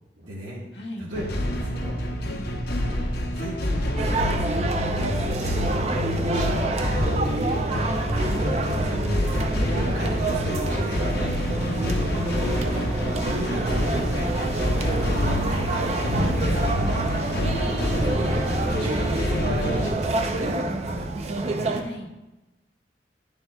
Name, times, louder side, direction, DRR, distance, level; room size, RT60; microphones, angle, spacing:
voice 1, 0.2-0.6 1.0-1.2 1.5-2.0 3.3-4.1 4.5-7.2 7.8-7.9 8.9-9.3 9.7-11.0 12.1-12.4 12.7-15.7 17.3-21.7, equal, 90° right, -8 dB, 1.5 m, -36 dB
voice 2, 0.7-1.1 2.2-2.5 7.4-8.0 11.2-11.5 15.8-16.5 21.7-22.1, equal, 90° left, 0 dB, 1.3 m, -39 dB
sound 1, 1.1-19.9, left 1 dB, 60° left, 0.8 m, -27 dB
sound 2, 4.0-21.8, right 2 dB, 35° right, 0.5 m, -28 dB
sound 3, 8.7-19.4, equal, 10° left, 1.1 m, -37 dB
10.0 x 6.9 x 2.3 m, 1.0 s
head